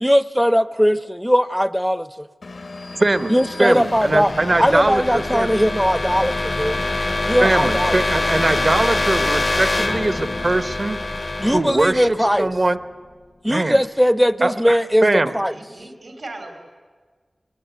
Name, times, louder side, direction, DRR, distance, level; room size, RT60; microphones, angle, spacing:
voice 1, 0.0-2.3 3.3-4.3 4.6-6.8 7.2-7.9 11.4-12.5 13.4-15.5, equal, ahead, 16 dB, 0.6 m, -19 dB
Engine, 2.4-9.4, left 3 dB, 80° left, 0.8 m, -37 dB
sound 1, 3.0-12.8, left 2 dB, 40° left, 0.6 m, -25 dB
voice 2, 3.0-5.6 7.4-11.0 11.5-12.8 13.5-13.8 14.4-15.3, right 2 dB, 45° right, 12 dB, 1.0 m, -21 dB
voice 3, 15.4-16.6, right 2 dB, 65° right, 4 dB, 3.0 m, -37 dB
23.0 x 20.0 x 8.1 m, 1.5 s
wide cardioid pair, 80°, 0 cm